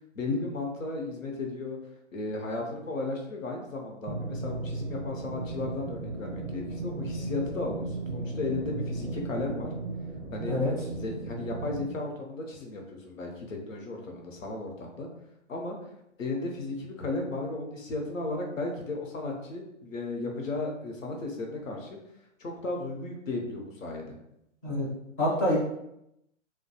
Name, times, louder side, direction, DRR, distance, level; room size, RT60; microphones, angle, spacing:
voice 1, 0.1-1.8 2.1-9.7 10.3-10.6 10.9-15.1 15.5-15.8 16.2-22.0 22.4-24.1, left 3 dB, 85° left, 1 dB, 0.8 m, -35 dB
sound 1, 4.1-11.9, right 3 dB, 40° right, 0.5 m, -36 dB
voice 2, 25.2-25.6, left 1 dB, 15° left, -6 dB, 0.4 m, -26 dB
2.2 x 2.2 x 2.8 m, 0.82 s
hypercardioid pair, 135°, 38 cm